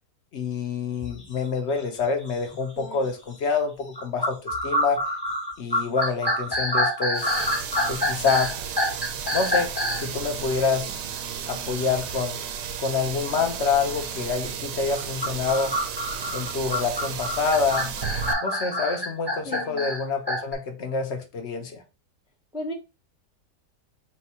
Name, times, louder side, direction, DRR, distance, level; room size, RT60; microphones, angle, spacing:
voice 1, 0.3-5.0 5.6-7.4 7.9-8.5 9.3-10.9 11.5-12.4 12.8-15.7 16.3-17.9 18.4-21.8, left 5 dB, 50° left, 0.9 m, -27 dB
sound 1, 1.0-1.2 1.8-1.9 2.5-2.8 4.0-10.1 15.0-20.5, left 1 dB, 15° left, 1.4 m, -27 dB
sound 2, 7.1-18.3, right 8 dB, 85° right, 1.2 m, -34 dB
voice 2, 19.4-19.9 22.5-22.7, left 1 dB, 5° right, 0.5 m, -34 dB
4.4 x 2.3 x 4.3 m
omnidirectional pair, 1.8 m